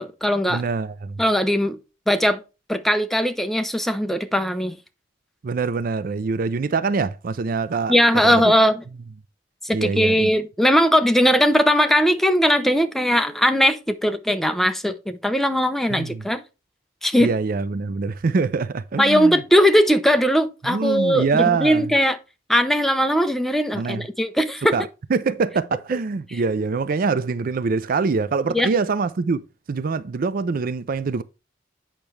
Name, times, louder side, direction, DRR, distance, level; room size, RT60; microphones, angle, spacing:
voice 1, 0.0-0.6 1.2-1.8 2.1-2.4 2.7-4.8 7.9-8.8 9.6-16.4 17.0-17.3 19.0-22.2 22.5-24.8 28.5-28.7, equal, ahead, 0.7 m, -19 dB
voice 2, 0.5-1.2 5.4-7.9 8.2-8.5 9.7-10.3 15.9-16.2 17.2-19.4 20.6-21.9 23.7-24.1 24.7-29.4 29.7-31.2, right 4 dB, 50° right, 0.4 m, -24 dB
8.8 x 5.9 x 3.2 m
head